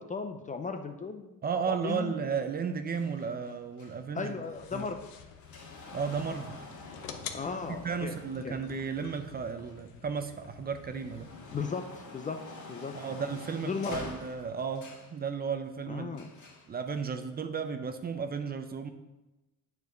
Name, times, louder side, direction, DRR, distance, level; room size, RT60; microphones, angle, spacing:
voice 1, 0.0-2.1 4.1-5.0 7.3-8.2 8.4-8.6 11.5-12.4 12.7-12.9 13.6-14.1 15.9-16.3, left 5 dB, 20° left, 6 dB, 0.5 m, -36 dB
voice 2, 1.4-4.3 4.7-4.9 5.9-6.6 7.8-11.3 12.9-16.1 16.7-18.9, right 6 dB, 25° right, 8 dB, 0.5 m, -34 dB
sound 1, 2.9-10.1 10.6-15.2 16.1-16.7 17.6-17.7, left 2 dB, 55° left, 1.8 m, -48 dB
sound 2, 4.5-11.5, left 8 dB, 75° left, 0.9 m, -48 dB
8.2 x 4.7 x 5.1 m, 1.0 s
cardioid pair, 120°, 35 cm